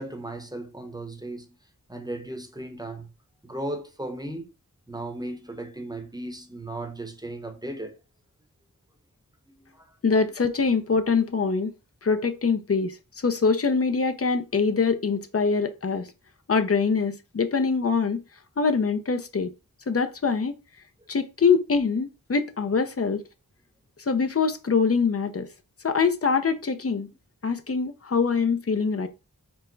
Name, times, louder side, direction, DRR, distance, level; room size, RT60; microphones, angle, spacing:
voice 1, 0.0-1.5 1.9-3.1 3.4-4.5 4.9-7.9 9.6-9.9, right 1 dB, 10° right, 0.8 m, -36 dB
voice 2, 10.0-11.7 12.0-16.1 16.5-18.2 18.6-19.5 19.9-20.6 21.1-23.2 24.0-25.5 25.8-27.1 27.4-29.1, left 5 dB, 45° left, 0.5 m, -24 dB
4.6 x 2.1 x 3.8 m
wide cardioid pair, 60°, 34 cm